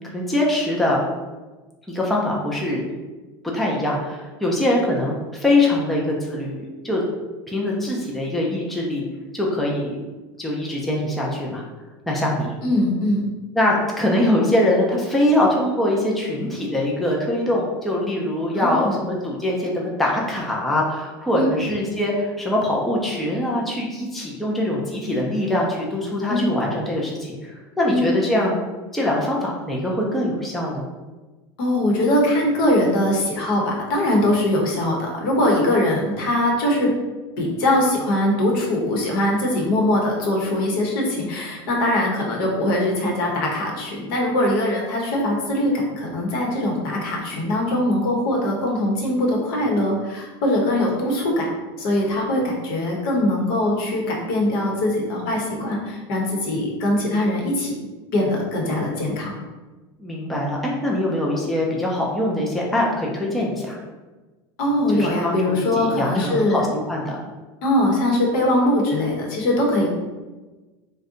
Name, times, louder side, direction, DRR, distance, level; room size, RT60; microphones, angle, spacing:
voice 1, 0.1-1.0 1.9-3.0 3.5-7.0 7.5-9.0 9.3-10.0 10.4-11.6 12.1-12.5 13.5-28.6 28.9-30.8 60.0-63.8 64.9-65.4 65.7-66.6 66.9-67.2, left 1 dB, ahead, -3 dB, 0.4 m, -23 dB
voice 2, 12.6-13.2 18.5-19.0 21.3-21.5 26.3-26.4 27.9-28.0 31.6-36.9 37.4-51.5 51.8-57.8 58.1-59.3 64.6-66.6 67.6-69.9, left 1 dB, 70° left, -1 dB, 0.9 m, -21 dB
2.6 x 2.1 x 3.7 m, 1.2 s
supercardioid pair, 150°, 13 cm